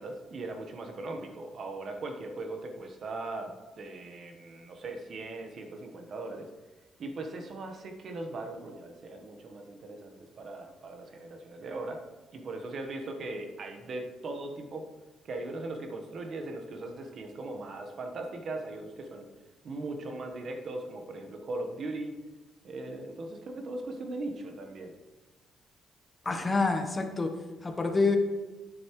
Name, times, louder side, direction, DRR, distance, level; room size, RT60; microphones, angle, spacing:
voice 1, 0.0-6.5 7.0-12.0 12.3-14.9 15.2-19.3 19.6-22.2 22.6-24.9, right 2 dB, 55° right, 4 dB, 1.1 m, -39 dB
voice 2, 26.2-27.3 27.6-28.2, left 3 dB, 25° left, 5 dB, 0.9 m, -27 dB
9.0 x 7.0 x 3.1 m, 1.2 s
cardioid pair, 90°, 0 cm